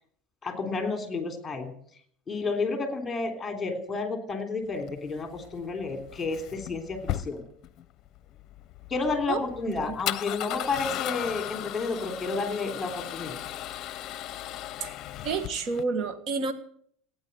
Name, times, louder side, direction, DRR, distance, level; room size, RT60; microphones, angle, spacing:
voice 1, 0.4-1.7 2.3-7.4 8.9-13.4, left 3 dB, 15° left, 6 dB, 3.3 m, -31 dB
Male speech man speaking / Car / Engine starting, 4.7-15.8, left 13 dB, 45° left, 0.8 m, -37 dB
voice 2, 15.2-16.5, right 4 dB, 45° right, 10 dB, 1.6 m, -29 dB
15.5 x 9.6 x 8.1 m, 0.64 s
supercardioid pair, 125°, 0 cm